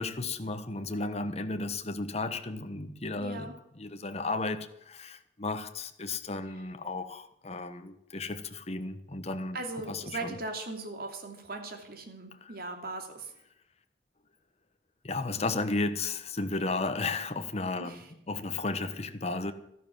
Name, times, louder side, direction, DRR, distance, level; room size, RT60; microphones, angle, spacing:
voice 1, 0.0-3.5 3.8-9.6 9.9-10.3 15.0-18.0 18.3-19.5, left 3 dB, 35° left, 1.1 m, -34 dB
voice 2, 3.2-3.5 9.5-13.3 17.8-18.1, right 2 dB, 55° right, 2.7 m, -39 dB
13.0 x 12.0 x 7.4 m
head